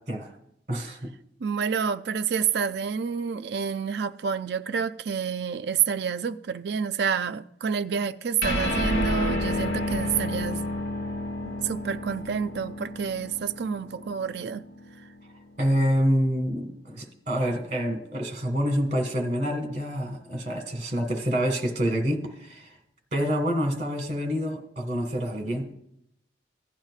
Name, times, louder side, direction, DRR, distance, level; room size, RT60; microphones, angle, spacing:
voice 1, 0.7-1.1 15.6-22.7 23.1-25.7, equal, 40° right, 1.6 m, -27 dB
voice 2, 1.4-10.6 11.4-14.6, right 7 dB, 65° right, 0.4 m, -28 dB
sound 1, 8.4-15.2, left 1 dB, 80° left, 1.3 m, -30 dB
16.0 x 10.5 x 2.4 m
head